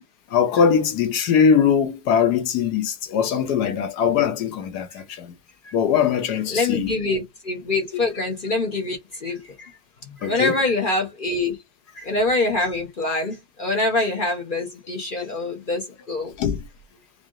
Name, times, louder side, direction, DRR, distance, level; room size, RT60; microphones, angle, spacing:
voice 1, 0.3-5.3 5.7-6.9 10.2-10.6 15.2-15.3 16.4-16.6, left 7 dB, 60° left, 1.2 m, -21 dB
voice 2, 6.5-9.7 10.2-11.6 11.9-16.3, left 2 dB, 45° left, 0.6 m, -25 dB
3.8 x 3.4 x 3.7 m
omnidirectional pair, 2.2 m